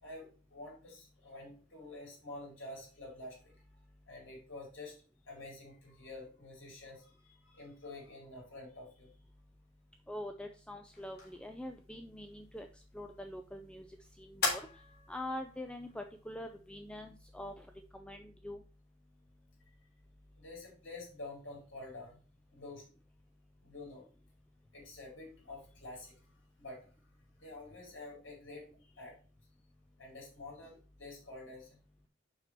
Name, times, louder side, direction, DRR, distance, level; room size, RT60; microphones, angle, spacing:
voice 1, 0.0-3.6 4.1-4.9 5.3-9.1 20.3-22.2 22.5-22.8 23.6-24.1 24.7-26.1 26.6-26.9 27.4-29.2 30.0-31.8, left 2 dB, 85° left, -2 dB, 4.4 m, -48 dB
voice 2, 10.1-18.6, left 1 dB, 5° left, 5 dB, 0.5 m, -45 dB
sound 1, 10.9-17.9, left 3 dB, 55° left, 3.4 m, -43 dB
6.7 x 5.8 x 4.5 m, 0.37 s
head